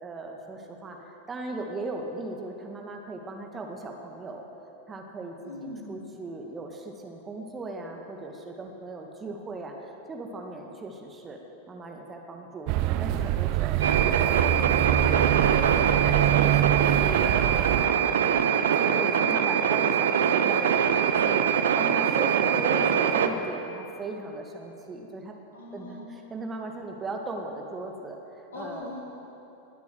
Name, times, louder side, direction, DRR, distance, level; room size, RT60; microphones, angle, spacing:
voice 1, 0.0-4.5 4.9-11.4 11.7-25.3 25.7-28.9, right 2 dB, 20° right, 2 dB, 1.8 m, -38 dB
voice 2, 5.4-6.0 25.5-26.1 28.5-29.0, left 2 dB, 65° left, -3 dB, 3.7 m, -40 dB
sound 1, 12.7-17.9, right 13 dB, 45° right, 0.5 m, -25 dB
sound 2, 13.8-23.3, right 8 dB, 60° right, 0.9 m, -23 dB
20.5 x 8.3 x 7.9 m, 2.9 s
figure-of-eight pair, 90°, 0 cm